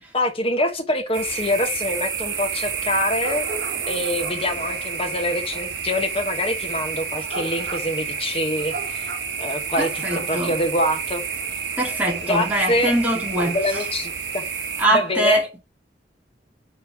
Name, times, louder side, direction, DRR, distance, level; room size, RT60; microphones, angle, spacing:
voice 1, 0.1-3.5 3.9-9.1 9.4-9.9 10.1-11.2 12.2-12.9 13.5-14.4 14.9-15.4, left 1 dB, 30° left, 1.3 m, -25 dB
sound 1, 1.1-14.9, right 5 dB, 70° right, 1.4 m, -29 dB
voice 2, 9.8-10.5 11.8-13.6 14.8-15.5, right 1 dB, 10° right, 2.6 m, -22 dB
5.5 x 4.2 x 5.9 m
head